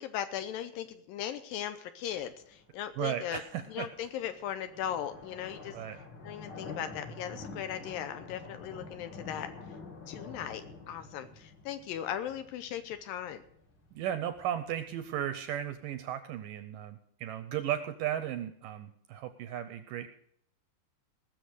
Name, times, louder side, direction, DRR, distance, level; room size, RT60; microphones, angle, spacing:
voice 1, 0.0-3.4 3.7-5.8 6.2-9.5 10.1-13.4, left 10 dB, 80° left, 11 dB, 2.2 m, -38 dB
sound 1, 2.0-15.9, left 3 dB, 45° left, 1.6 m, -49 dB
voice 2, 3.0-3.9 5.7-6.0 13.9-20.1, right 10 dB, 75° right, 10 dB, 2.0 m, -35 dB
19.0 x 6.9 x 6.4 m, 0.69 s
omnidirectional pair, 4.5 m